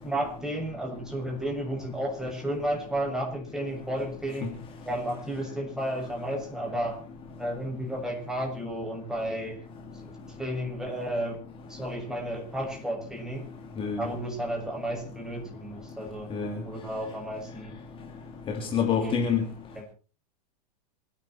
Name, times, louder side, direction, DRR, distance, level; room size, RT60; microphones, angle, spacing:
voice 1, 0.0-4.5 4.9-7.0 7.4-9.6 10.4-11.4 11.7-13.5 14.0-16.3 16.6-17.8 19.0-19.2 19.8-19.9, right 1 dB, 5° right, 7.0 m, -32 dB
voice 2, 18.7-19.4, left 7 dB, 25° left, 2.7 m, -26 dB
27.0 x 10.5 x 4.5 m
hypercardioid pair, 130°, 21 cm